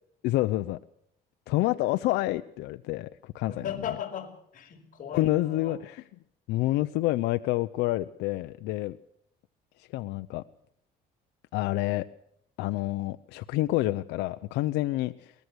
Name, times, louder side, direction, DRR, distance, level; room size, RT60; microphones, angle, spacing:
voice 1, 0.2-0.8 1.5-3.9 5.1-6.0 6.5-9.0 9.8-10.4 11.5-12.1 12.6-15.3, left 17 dB, 90° left, 10 dB, 0.8 m, -28 dB
voice 2, 3.5-5.8, left 8 dB, 55° left, 3 dB, 5.6 m, -37 dB
22.5 x 19.0 x 6.4 m, 0.70 s
cardioid pair, 110°, 17 cm